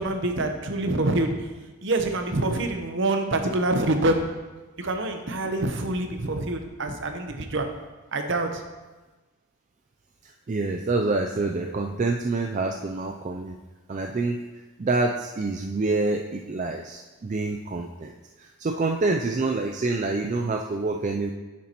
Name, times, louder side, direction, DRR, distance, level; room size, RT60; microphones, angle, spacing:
voice 1, 0.0-1.3 1.8-4.2 4.8-7.7 8.1-8.6, right 2 dB, 55° right, 5 dB, 0.8 m, -26 dB
voice 2, 10.5-13.5 13.9-14.4 14.8-21.3, right 3 dB, 35° right, 2 dB, 0.4 m, -27 dB
10.0 x 7.3 x 3.0 m, 1.2 s
head